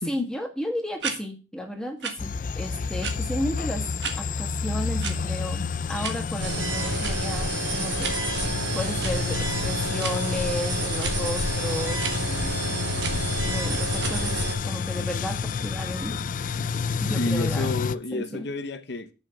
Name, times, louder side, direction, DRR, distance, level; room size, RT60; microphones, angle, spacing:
voice 1, 0.1-3.9 4.2-16.2 17.0-17.7 18.1-18.5, equal, 5° left, 1.7 m, -33 dB
sound 1, 1.0-1.2 2.0-2.1 3.0-3.1 4.0-4.1 5.0-5.1 6.0-6.1 7.0-7.1 8.0-8.1 9.0-9.1 10.0-10.2 11.0-11.1 12.0-12.1 13.0-13.2 14.0-14.2, right 6 dB, 65° right, 1.5 m, -31 dB
sound 2, 2.2-17.9, left 5 dB, 45° left, 0.4 m, -29 dB
sound 3, 6.4-14.5, right 2 dB, 90° right, 3.5 m, -30 dB
voice 2, 17.1-19.1, left 2 dB, 60° left, 0.9 m, -30 dB
7.2 x 6.0 x 7.6 m
head